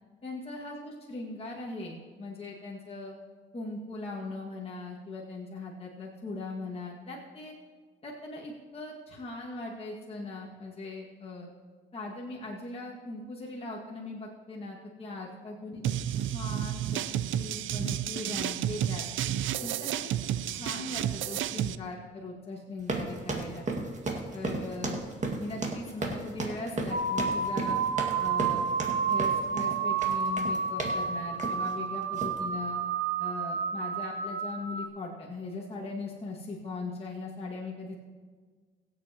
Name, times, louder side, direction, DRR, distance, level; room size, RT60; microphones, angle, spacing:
voice 1, 0.2-3.1 3.5-7.6 8.0-11.5 11.9-15.8 16.3-19.0 19.6-20.1 20.4-23.7 24.3-25.0 25.4-27.8 28.2-28.7 29.1-32.8 33.2-38.0, left 3 dB, 30° left, -4 dB, 2.0 m, -40 dB
sound 1, 15.8-21.8, right 11 dB, 75° right, 0.5 m, -31 dB
sound 2, 22.8-31.0 31.4-31.7 32.1-32.4, right 3 dB, 35° right, 2.0 m, -34 dB
sound 3, 26.9-34.9, right 5 dB, 55° right, 1.2 m, -30 dB
22.5 x 8.2 x 3.0 m, 1.5 s
cardioid pair, 90°, 20 cm